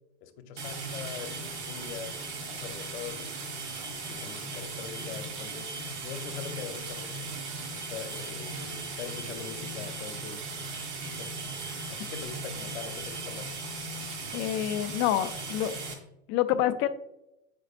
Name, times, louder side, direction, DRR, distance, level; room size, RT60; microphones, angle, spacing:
voice 1, 0.2-3.3 3.9-7.3 7.7-10.5 11.2-11.4 11.9-13.5, left 7 dB, 70° left, 8 dB, 0.9 m, -42 dB
sound 1, 0.6-15.9, right 3 dB, 70° right, 1.8 m, -37 dB
voice 2, 14.3-15.8 16.3-16.9, left 12 dB, 35° left, 11 dB, 0.4 m, -27 dB
7.9 x 5.2 x 2.5 m, 0.86 s
supercardioid pair, 145°, 34 cm